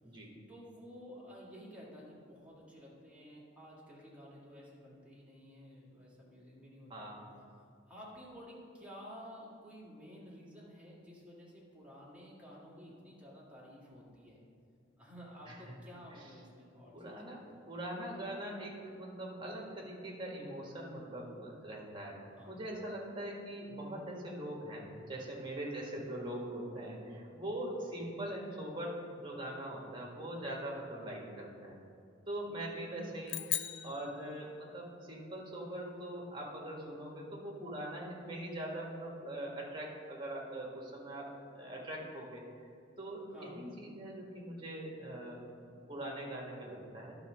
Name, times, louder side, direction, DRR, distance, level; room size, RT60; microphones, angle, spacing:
voice 1, 0.5-7.1 7.9-14.4 15.0-17.5 22.3-22.6 25.8-25.9 33.8-33.9 43.3-43.7, equal, 5° right, -7 dB, 2.1 m, -52 dB
voice 2, 6.9-7.3 15.5-15.7 16.1-16.2 16.9-22.2 22.5-31.8 32.3-33.5 33.8-42.4 43.0-47.2, right 1 dB, 25° right, -2 dB, 1.6 m, -42 dB
sound 1, 33.3-34.9, left 14 dB, 75° left, 0.4 m, -39 dB
11.0 x 4.0 x 6.2 m, 2.4 s
head